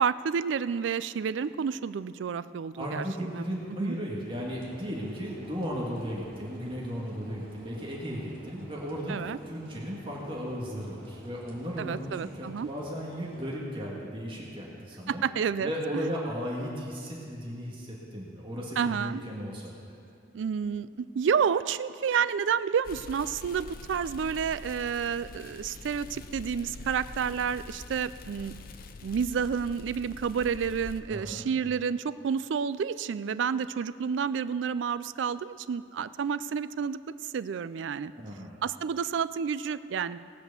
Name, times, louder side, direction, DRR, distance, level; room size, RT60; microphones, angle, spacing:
voice 1, 0.0-3.0 3.3-3.4 3.7-4.0 9.1-9.4 11.8-12.7 15.1-16.1 18.8-19.2 20.3-28.5 29.0-37.0 37.3-38.1 38.6-40.2, right 7 dB, 80° right, 15 dB, 0.4 m, -30 dB
voice 2, 2.8-15.2 15.6-19.9 31.1-31.4 38.1-38.5, equal, 30° right, -4 dB, 1.7 m, -35 dB
sound 1, 4.2-13.6, right 1 dB, 50° right, 2.4 m, -51 dB
sound 2, 22.8-31.0, left 3 dB, 50° left, 0.6 m, -45 dB
18.0 x 6.1 x 6.8 m, 2.5 s
head